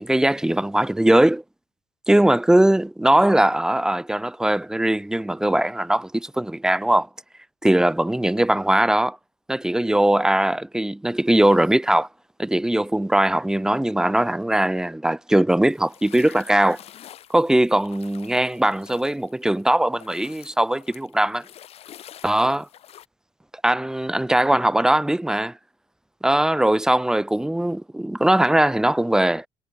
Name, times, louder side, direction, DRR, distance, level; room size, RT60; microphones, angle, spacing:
voice 1, 0.0-1.4 2.1-7.1 7.6-9.2 9.5-12.1 12.4-16.8 17.3-21.4 22.2-22.7 23.6-25.5 26.2-29.4, right 1 dB, 5° right, 0.4 m, -20 dB
sound 1, 15.7-19.6 19.9-23.1, left 11 dB, 60° left, 4.4 m, -47 dB
supercardioid pair, 70°, 11 cm